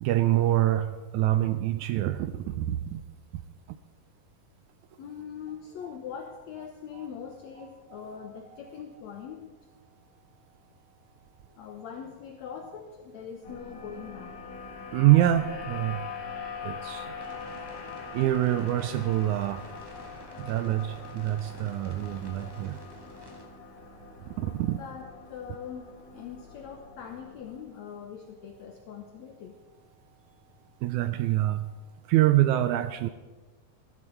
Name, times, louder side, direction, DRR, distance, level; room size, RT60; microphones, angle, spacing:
voice 1, 0.0-3.0 6.9-7.1 7.9-8.1 14.9-16.1 16.6-17.2 18.1-19.7 20.4-22.8 24.3-24.8 30.8-31.7 32.1-33.1, right 14 dB, 80° right, 11 dB, 1.8 m, -25 dB
voice 2, 5.0-9.5 11.5-14.4 24.7-29.6, left 7 dB, 70° left, 4 dB, 1.9 m, -42 dB
sound 1, 13.4-27.6, left 5 dB, 85° left, 4.2 m, -42 dB
sound 2, 17.2-23.4, equal, 10° right, 1.8 m, -50 dB
15.5 x 13.5 x 4.5 m, 1.2 s
omnidirectional pair, 3.8 m